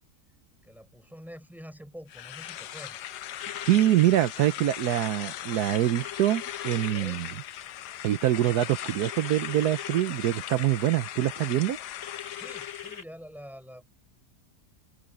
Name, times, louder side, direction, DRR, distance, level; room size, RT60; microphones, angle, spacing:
voice 1, 0.6-3.0 6.8-7.2 12.3-14.1, equal, ahead, 6.2 m, -46 dB
sound 1, 2.1-13.0, left 12 dB, 85° left, 1.3 m, -39 dB
sound 2, 3.4-4.0 6.0-7.0 9.0-10.0 12.0-13.0, left 8 dB, 50° left, 3.8 m, -42 dB
voice 2, 3.6-7.3 8.0-11.8, right 13 dB, 75° right, 1.2 m, -25 dB
open air
omnidirectional pair, 1.7 m